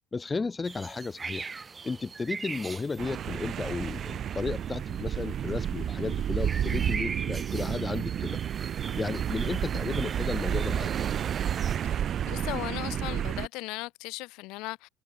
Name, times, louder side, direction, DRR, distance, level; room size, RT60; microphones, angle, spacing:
voice 1, 0.1-1.5 1.8-8.4 8.9-10.9, left 4 dB, 20° left, 0.8 m, -33 dB
sound 1, 0.6-11.8, right 5 dB, 25° right, 5.6 m, -42 dB
sound 2, 3.0-13.5, right 9 dB, 45° right, 0.6 m, -31 dB
voice 2, 12.3-14.9, left 22 dB, 65° left, 0.8 m, -37 dB
hypercardioid pair, 70°, 0 cm